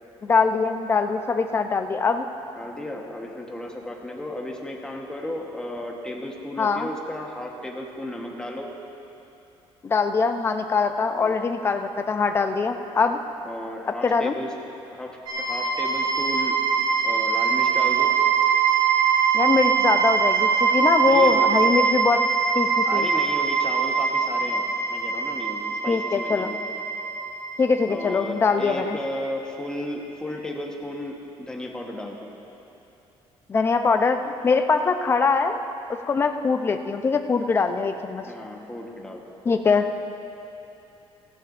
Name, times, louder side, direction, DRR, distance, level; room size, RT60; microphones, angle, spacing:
voice 1, 0.2-2.3 6.6-6.9 9.8-13.2 14.0-14.4 19.3-22.2 22.5-23.1 25.9-26.5 27.6-29.0 33.5-35.6 36.1-38.2 39.4-40.0, left 4 dB, 25° left, 7 dB, 0.6 m, -22 dB
voice 2, 2.6-8.7 11.1-11.4 12.6-12.9 13.4-14.5 14.9-16.6 17.0-18.2 21.0-21.5 22.9-24.6 24.9-26.6 27.9-32.3 38.2-39.4, left 1 dB, 10° left, 0 dB, 1.2 m, -34 dB
sound 1, 15.3-29.2, right 6 dB, 65° right, 3.6 m, -23 dB
18.0 x 16.0 x 2.6 m, 2.9 s
cardioid pair, 165°, 10 cm